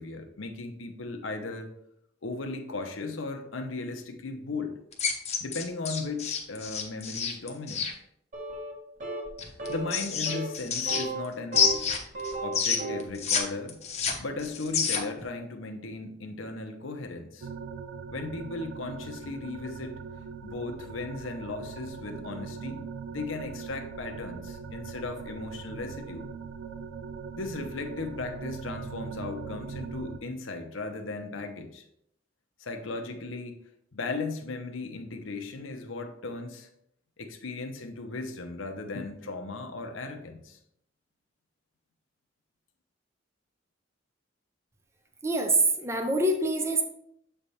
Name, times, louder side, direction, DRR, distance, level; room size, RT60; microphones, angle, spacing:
voice 1, 0.0-1.7 2.2-4.7 5.4-7.9 9.7-11.7 12.4-13.8 14.2-17.5 18.1-20.0 20.4-22.8 23.1-26.3 27.3-31.8 32.6-33.5 33.9-36.7 37.2-40.6, left 3 dB, 75° left, 5 dB, 0.8 m, -36 dB
sound 1, 4.9-7.9 9.4-11.3 11.5-13.4 13.7-15.2, left 6 dB, 35° left, 0.9 m, -28 dB
sound 2, 8.3-8.8 9.0-9.3 9.6-10.0 10.3-10.5 10.9-11.8 12.1-13.1, right 2 dB, 40° right, 1.2 m, -34 dB
sound 3, 17.4-30.2, right 6 dB, 65° right, 0.4 m, -41 dB
voice 2, 45.2-46.8, right 2 dB, 15° right, 4 dB, 0.6 m, -25 dB
7.4 x 3.4 x 4.1 m, 0.74 s
head